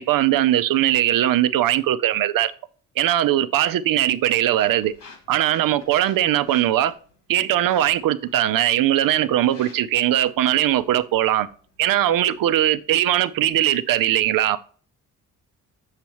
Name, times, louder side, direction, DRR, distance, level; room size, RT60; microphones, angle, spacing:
voice 1, 0.0-2.5 3.0-4.9 5.3-6.9 7.3-11.5 11.8-14.6, right 12 dB, 70° right, 0.7 m, -20 dB
sound 1, 3.6-13.5, left 3 dB, 65° left, 2.4 m, -50 dB
7.1 x 6.7 x 3.0 m
cardioid pair, 70°, 34 cm